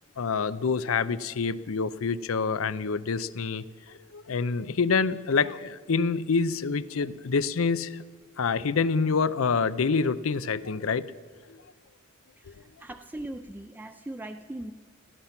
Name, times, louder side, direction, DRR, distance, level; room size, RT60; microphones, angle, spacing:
voice 1, 0.2-8.0 8.4-11.1, left 5 dB, 80° left, 15 dB, 0.6 m, -27 dB
voice 2, 12.4-14.7, right 1 dB, 10° right, 7 dB, 0.3 m, -40 dB
16.5 x 13.5 x 5.9 m, 1.5 s
head